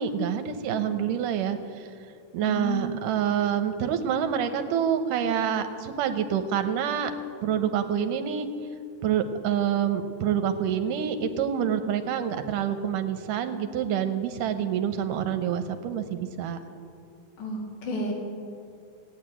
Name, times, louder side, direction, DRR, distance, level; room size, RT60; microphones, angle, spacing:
voice 1, 0.0-1.6 2.3-7.1 7.4-8.5 9.0-16.6, right 8 dB, 75° right, 8 dB, 2.4 m, -27 dB
voice 2, 2.4-2.9 17.4-18.1, equal, 65° left, -3 dB, 4.0 m, -31 dB
16.0 x 9.1 x 9.0 m, 2.5 s
omnidirectional pair, 3.9 m